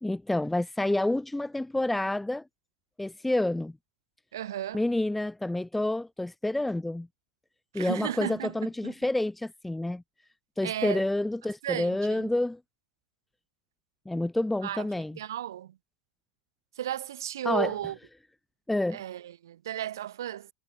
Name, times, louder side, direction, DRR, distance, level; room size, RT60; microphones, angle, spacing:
voice 1, 0.0-2.4 3.0-3.8 4.7-7.1 7.7-10.0 10.6-12.6 14.0-15.2 17.4-17.7 18.7-19.0, left 1 dB, 5° left, 1.3 m, -28 dB
voice 2, 4.3-4.8 7.7-8.5 8.8-8.9 10.6-11.1 11.6-12.2 14.6-14.8 15.2-15.7 16.8-18.0 18.9-20.5, right 11 dB, 75° right, 2.2 m, -34 dB
hypercardioid pair, 100°, 2 cm